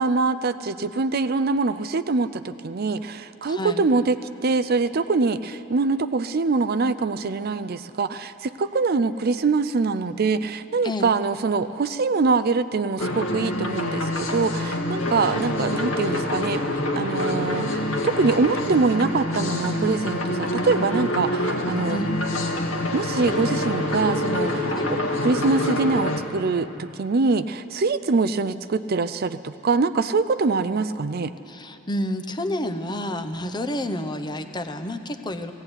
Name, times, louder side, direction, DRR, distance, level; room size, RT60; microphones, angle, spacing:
voice 1, 0.0-4.2 4.4-16.6 16.9-22.0 22.9-31.3, right 4 dB, 45° right, 13 dB, 0.4 m, -24 dB
voice 2, 3.5-3.9 10.8-11.1 21.9-22.1 24.7-24.9 31.5-35.5, left 1 dB, 20° left, 7 dB, 0.8 m, -29 dB
sound 1, 13.0-26.2, left 1 dB, 80° left, 2.0 m, -26 dB
18.0 x 16.0 x 9.7 m, 2.8 s
head